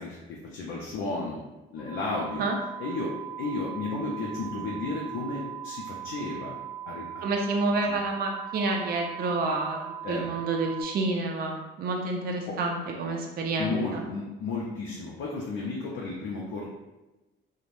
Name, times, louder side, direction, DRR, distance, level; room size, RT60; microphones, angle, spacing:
voice 1, 0.0-1.4 1.7-2.5 2.8-6.6 6.9-7.3 7.9-8.0 10.0-10.3 12.5-12.6 13.6-16.7, left 3 dB, 90° left, -3 dB, 0.5 m, -33 dB
sound 1, 1.8-10.8, right 10 dB, 15° right, 1.3 m, -39 dB
voice 2, 7.2-9.8 10.1-14.0, right 3 dB, 50° right, 1 dB, 0.4 m, -29 dB
3.1 x 2.1 x 2.5 m, 1.0 s
cardioid pair, 90°, 20 cm